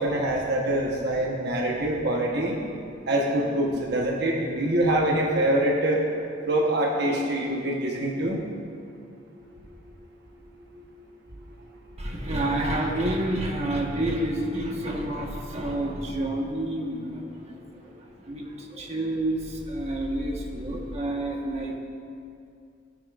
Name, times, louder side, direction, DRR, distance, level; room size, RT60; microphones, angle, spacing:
voice 1, 0.0-2.6 3.1-6.0 6.5-8.4, right 1 dB, 60° right, -1 dB, 1.1 m, -24 dB
voice 2, 12.0-21.8, right 1 dB, 35° right, -1 dB, 1.3 m, -29 dB
18.0 x 9.9 x 2.5 m, 2.5 s
head